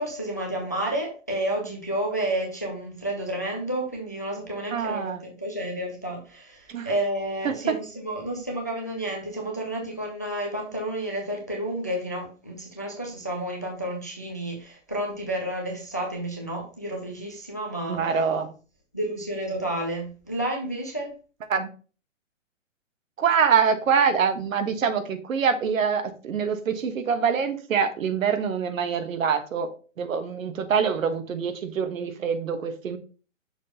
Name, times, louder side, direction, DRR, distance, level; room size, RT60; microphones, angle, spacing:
voice 1, 0.0-18.4 18.9-21.1, right 1 dB, 15° left, 0.3 m, -31 dB
voice 2, 4.7-5.2 6.7-6.9 7.4-7.5 17.9-18.5 21.5-21.7 23.2-29.7 30.0-33.0, right 6 dB, 80° right, 1.3 m, -25 dB
6.3 x 6.1 x 2.8 m
hypercardioid pair, 160°, 39 cm